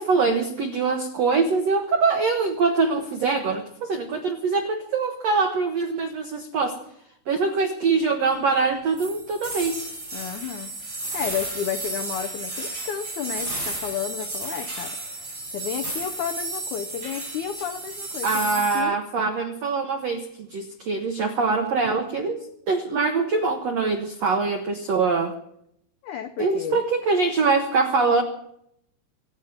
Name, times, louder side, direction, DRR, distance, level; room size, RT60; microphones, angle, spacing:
voice 1, 0.0-6.8 7.3-9.8 18.2-25.4 26.4-28.2, right 4 dB, 80° right, 5 dB, 1.4 m, -23 dB
sound 1, 9.0-18.8, right 2 dB, 25° right, 6.0 m, -33 dB
voice 2, 10.1-15.0 15.2-19.0 26.0-26.8, left 9 dB, 85° left, 7 dB, 1.7 m, -32 dB
25.0 x 9.0 x 5.8 m, 0.75 s
omnidirectional pair, 4.5 m